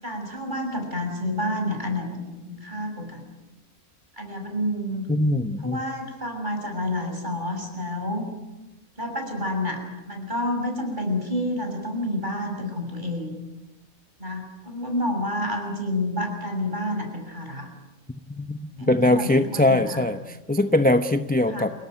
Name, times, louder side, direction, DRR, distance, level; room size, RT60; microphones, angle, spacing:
voice 1, 0.0-3.3 4.2-5.1 5.6-8.3 9.0-9.8 10.1-13.4 14.2-17.7 18.7-20.0 21.5-21.7, left 1 dB, 30° right, 3 dB, 6.7 m, -29 dB
voice 2, 5.1-5.8 18.3-21.7, left 1 dB, 10° left, 8 dB, 0.6 m, -22 dB
28.5 x 18.0 x 9.2 m, 1.0 s
omnidirectional pair, 1.5 m